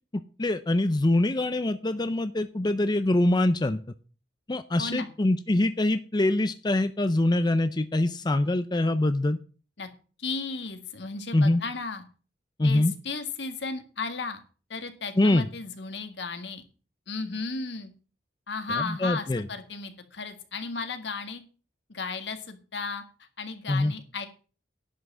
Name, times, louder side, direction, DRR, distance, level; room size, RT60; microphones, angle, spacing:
voice 1, 0.4-3.8 4.5-9.4 11.3-11.6 12.6-12.9 15.2-15.5 18.8-19.5 23.7-23.9, left 1 dB, 25° left, 11 dB, 0.5 m, -24 dB
voice 2, 4.8-5.1 9.8-9.9 10.2-12.0 12.6-14.4 14.7-16.6 17.1-17.9 18.5-21.4 21.9-23.0 23.4-24.3, left 4 dB, 75° left, 7 dB, 1.8 m, -34 dB
11.0 x 5.8 x 7.6 m, 0.38 s
head